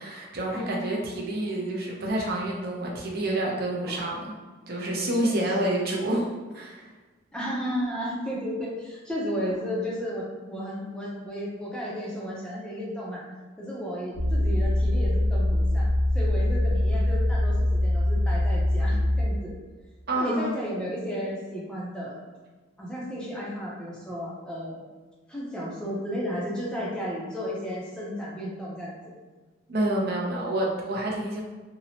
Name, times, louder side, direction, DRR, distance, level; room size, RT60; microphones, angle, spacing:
voice 1, 0.0-4.4 4.7-6.9 20.1-20.5 29.7-31.4, right 1 dB, 50° right, -2 dB, 0.5 m, -28 dB
voice 2, 0.5-1.7 3.9-4.0 5.2-5.9 7.3-13.2 13.6-15.9 16.1-19.5 20.1-22.2 22.8-24.9 25.3-29.0, equal, 5° left, -6 dB, 0.5 m, -33 dB
sound 1, 14.1-19.3, left 1 dB, 90° left, 0.9 m, -23 dB
2.7 x 2.0 x 2.8 m, 1.3 s
head